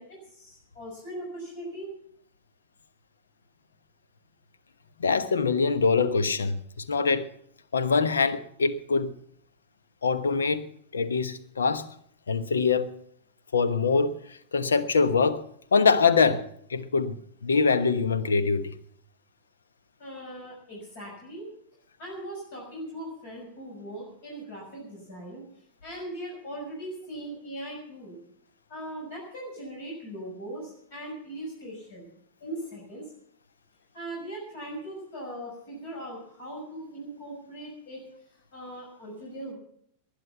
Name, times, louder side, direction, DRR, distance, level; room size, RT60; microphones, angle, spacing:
voice 1, 0.0-1.9 20.0-21.5 22.0-25.4 25.8-28.2 28.7-32.1 32.4-33.0 33.9-38.0 38.5-39.5, right 1 dB, 50° left, 6.1 m, -39 dB
voice 2, 5.0-7.3 7.7-9.1 10.0-10.7 10.9-11.8 12.3-12.9 13.5-15.4 15.7-17.2 17.4-18.7, left 5 dB, 70° left, 1.1 m, -24 dB
20.0 x 10.5 x 5.7 m
figure-of-eight pair, 90°, 0 cm